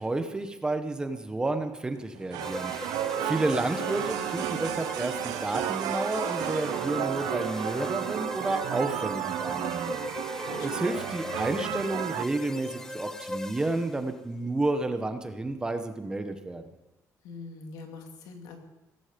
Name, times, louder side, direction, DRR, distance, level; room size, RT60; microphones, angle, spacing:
voice 1, 0.0-2.7 3.2-9.9 10.6-16.6, right 2 dB, 10° right, 7 dB, 1.1 m, -31 dB
sound 1, 2.2-12.3, right 14 dB, 85° right, 0.6 m, -33 dB
sound 2, 2.4-14.2, left 1 dB, 10° left, 0.7 m, -38 dB
Wind instrument woodwind instrument, 6.3-12.3, right 6 dB, 65° right, 3.6 m, -49 dB
voice 2, 10.4-11.0 17.2-18.6, left 4 dB, 85° left, 3 dB, 2.8 m, -43 dB
17.5 x 14.5 x 5.2 m, 1.0 s
cardioid pair, 160°, 6 cm